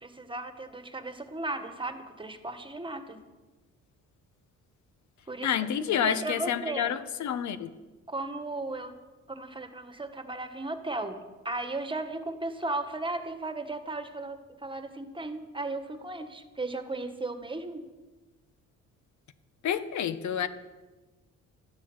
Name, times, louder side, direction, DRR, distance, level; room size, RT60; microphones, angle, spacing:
voice 1, 0.0-3.2 5.3-6.9 8.1-9.0 9.3-17.8, right 2 dB, 15° right, 8 dB, 1.7 m, -36 dB
voice 2, 5.4-7.7 19.6-20.5, left 9 dB, 70° left, 13 dB, 1.2 m, -29 dB
13.0 x 10.5 x 8.1 m, 1.2 s
cardioid pair, 90°, 30 cm